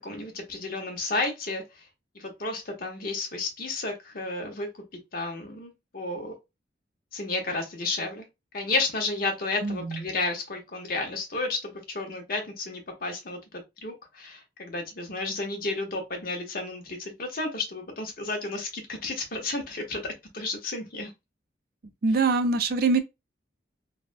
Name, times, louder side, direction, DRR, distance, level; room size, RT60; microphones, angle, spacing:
voice 1, 0.0-1.8 2.1-4.8 5.1-6.3 7.1-8.3 8.5-21.1, left 3 dB, 55° left, 1.0 m, -32 dB
voice 2, 9.6-10.0 22.0-23.0, right 4 dB, 55° right, 0.5 m, -23 dB
3.4 x 2.2 x 2.5 m
head